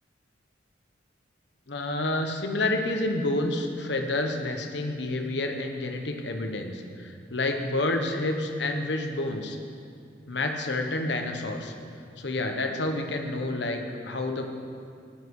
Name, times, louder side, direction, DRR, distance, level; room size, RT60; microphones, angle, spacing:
voice 1, 1.7-9.6 10.3-11.7 12.2-14.4, left 2 dB, 65° left, 4 dB, 1.2 m, -29 dB
13.5 x 10.5 x 4.8 m, 2.4 s
head